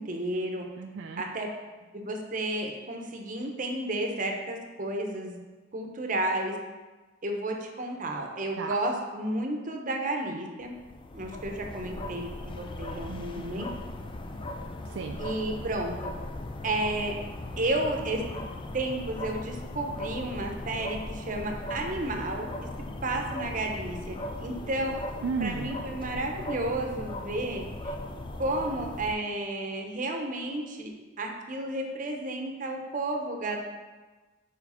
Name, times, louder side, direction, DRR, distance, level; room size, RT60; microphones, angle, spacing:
voice 1, 0.0-0.7 1.2-1.5 1.9-5.4 5.7-6.6 7.2-10.7 11.1-13.7 15.2-16.1 16.6-17.1 17.6-18.2 18.7-22.7 23.0-24.9 25.4-27.9 28.4-30.9 31.2-33.6, right 1 dB, 45° right, 2 dB, 0.8 m, -32 dB
voice 2, 0.8-1.2 8.6-8.7 13.1-13.6 14.8-15.2 25.2-25.7, right 5 dB, 75° right, 4 dB, 0.4 m, -34 dB
sound 1, 10.6-29.1, left 1 dB, 25° left, 0.4 m, -38 dB
4.9 x 4.5 x 5.6 m, 1.3 s
head